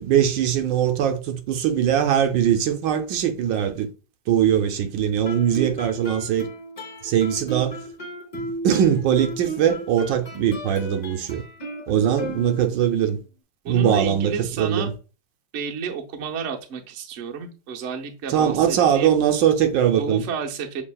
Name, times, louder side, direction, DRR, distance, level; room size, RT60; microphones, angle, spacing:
voice 1, 0.0-3.9 4.3-6.5 7.0-7.8 8.3-11.4 11.9-13.2 13.7-14.9 18.3-20.2, right 9 dB, 75° right, 1.2 m, -21 dB
Guitar, 5.2-13.0, right 2 dB, 50° left, 0.5 m, -34 dB
voice 2, 13.6-14.9 15.5-19.2 20.0-20.8, right 4 dB, 55° right, 0.8 m, -31 dB
7.2 x 2.7 x 2.2 m
omnidirectional pair, 2.1 m